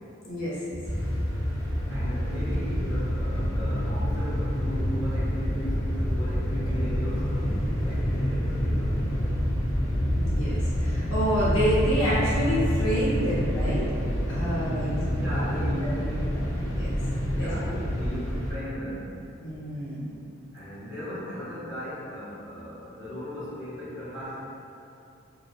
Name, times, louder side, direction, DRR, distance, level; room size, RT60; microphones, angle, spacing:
voice 1, 0.2-0.8 10.1-13.8 14.3-15.1 15.6-15.7 16.3-16.4 16.7-16.9 17.4-18.1 19.4-20.2, equal, 70° left, -8 dB, 0.7 m, -28 dB
sound 1, 0.8-18.5, equal, 15° left, 0.4 m, -27 dB
voice 2, 1.9-9.0 15.0-16.3 17.1-19.2 20.5-24.4, equal, 20° right, -18 dB, 1.2 m, -37 dB
2.5 x 2.1 x 2.3 m, 2.6 s
head